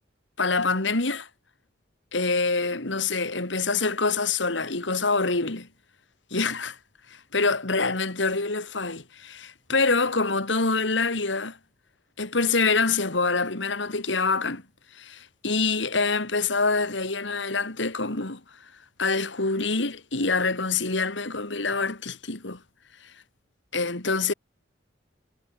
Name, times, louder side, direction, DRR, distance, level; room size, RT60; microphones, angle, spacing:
voice 1, 0.4-1.3 2.1-5.7 6.3-6.8 7.1-11.6 12.2-14.6 14.9-18.4 19.0-22.6 23.7-24.3, left 3 dB, 70° left, 2.6 m, -26 dB
head